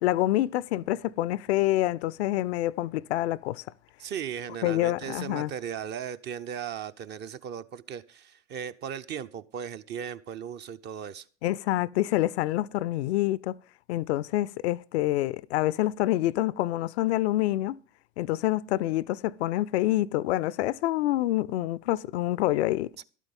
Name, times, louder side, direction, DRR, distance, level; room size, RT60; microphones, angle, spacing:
voice 1, 0.0-3.6 4.6-5.5 11.4-13.6 13.9-17.8 18.2-22.9, left 15 dB, 60° left, 0.5 m, -27 dB
voice 2, 4.0-11.2, right 8 dB, 30° right, 0.5 m, -37 dB
12.0 x 8.3 x 5.4 m
figure-of-eight pair, 80°, 39 cm